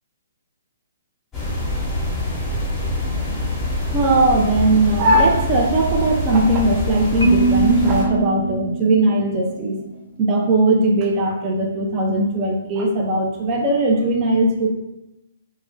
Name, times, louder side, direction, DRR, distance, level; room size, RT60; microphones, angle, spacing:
sound 1, 1.3-8.0, left 1 dB, 10° left, 0.9 m, -24 dB
voice 1, 3.9-9.8 10.2-14.7, right 2 dB, 30° right, 0 dB, 0.5 m, -19 dB
Marimba xylophone, 7.2-9.4, right 4 dB, 80° left, 0.4 m, -21 dB
2.3 x 2.1 x 3.6 m, 0.92 s
figure-of-eight pair, 125°, 0 cm